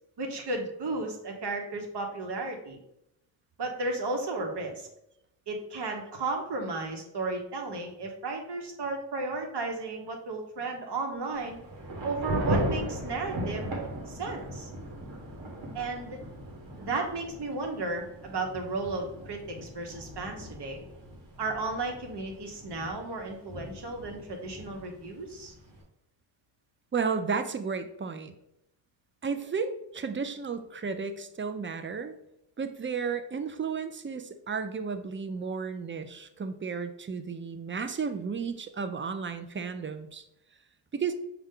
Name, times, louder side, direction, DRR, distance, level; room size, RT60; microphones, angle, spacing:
voice 1, 0.2-2.8 3.6-4.9 5.5-11.6 12.0-13.7 14.1-14.7 15.7-16.2 16.8-20.8 21.4-25.5, right 3 dB, 60° right, 3 dB, 1.0 m, -34 dB
Thunder / Rain, 11.3-25.8, right 1 dB, 85° right, 1.2 m, -37 dB
voice 2, 26.9-28.3 29.2-32.1 32.6-40.2 40.9-41.1, right 5 dB, 25° right, 9 dB, 0.4 m, -33 dB
5.4 x 2.4 x 3.6 m, 0.82 s
cardioid pair, 45°, 47 cm